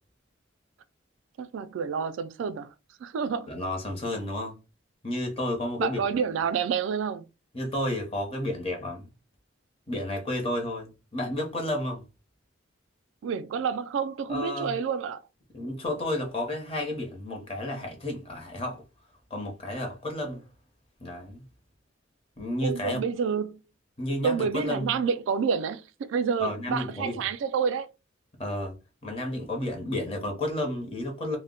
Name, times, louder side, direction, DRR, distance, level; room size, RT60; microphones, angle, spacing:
voice 1, 1.4-2.7 3.0-3.5 5.8-7.3 13.2-15.2 22.6-23.6 24.2-25.8 26.1-27.9, right 6 dB, 75° right, 0.3 m, -28 dB
voice 2, 3.5-4.6 5.0-6.0 7.5-9.1 9.9-12.0 14.3-14.8 15.5-18.8 19.3-20.4 21.0-21.4 22.4-23.0 24.0-24.9 26.4-27.2 28.4-28.7 29.0-31.4, left 1 dB, 30° left, 0.7 m, -31 dB
2.1 x 2.0 x 3.7 m
head